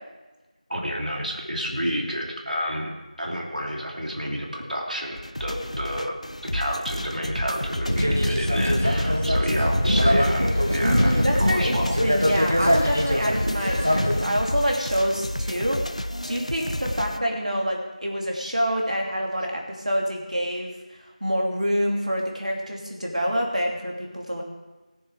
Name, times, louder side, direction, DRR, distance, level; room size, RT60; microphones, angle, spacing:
voice 1, 0.7-2.9 3.2-12.0, equal, 85° right, -1 dB, 3.2 m, -30 dB
sound 1, 5.2-17.2, left 1 dB, 55° left, 0.6 m, -31 dB
sound 2, 7.9-14.2, equal, 20° right, 0.5 m, -22 dB
voice 2, 10.8-15.8 16.3-20.7 21.0-24.4, equal, 60° right, 0 dB, 2.8 m, -26 dB
18.0 x 7.3 x 4.9 m, 1.1 s
figure-of-eight pair, 180°, 4 cm